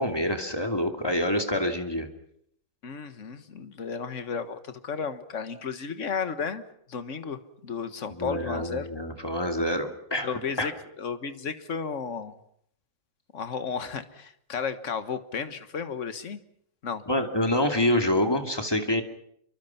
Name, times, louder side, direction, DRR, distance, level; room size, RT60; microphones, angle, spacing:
voice 1, 0.0-2.1 8.1-10.7 17.1-19.0, left 1 dB, 15° left, 5 dB, 2.5 m, -27 dB
voice 2, 2.8-6.6 6.9-8.9 10.2-10.7 11.0-12.4 13.3-16.4 16.8-17.0, left 6 dB, 45° left, 10 dB, 1.7 m, -33 dB
28.0 x 24.5 x 5.9 m, 0.70 s
omnidirectional pair, 2.0 m